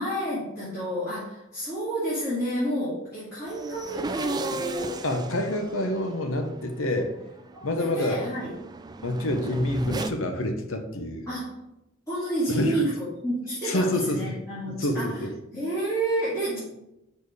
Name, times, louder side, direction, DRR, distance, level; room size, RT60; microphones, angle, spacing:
voice 1, 0.0-5.0 7.5-8.5 11.3-11.6 12.1-15.2 15.5-16.6, right 1 dB, 15° left, -12 dB, 2.1 m, -30 dB
sound 1, 3.4-10.1, right 3 dB, 20° right, 0.3 m, -36 dB
voice 2, 5.0-7.1 7.6-8.2 9.0-11.2 12.5-12.8 13.6-14.3 14.6-15.3, left 1 dB, 80° left, 6 dB, 0.9 m, -27 dB
5.1 x 4.5 x 4.8 m, 0.88 s
head